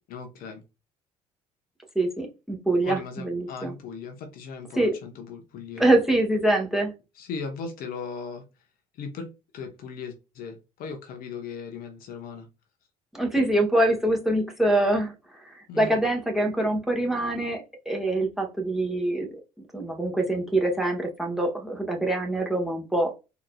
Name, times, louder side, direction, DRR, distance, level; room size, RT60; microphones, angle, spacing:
voice 1, 0.1-0.6 2.8-5.9 7.1-8.4 8.9-12.5 15.7-16.0, left 5 dB, 60° left, 0.9 m, -38 dB
voice 2, 1.9-3.7 4.8-4.9 5.8-6.9 13.1-15.1 15.4-19.3 19.7-23.1, right 1 dB, ahead, 1.3 m, -24 dB
3.9 x 2.8 x 2.2 m
hypercardioid pair, 60°, 17 cm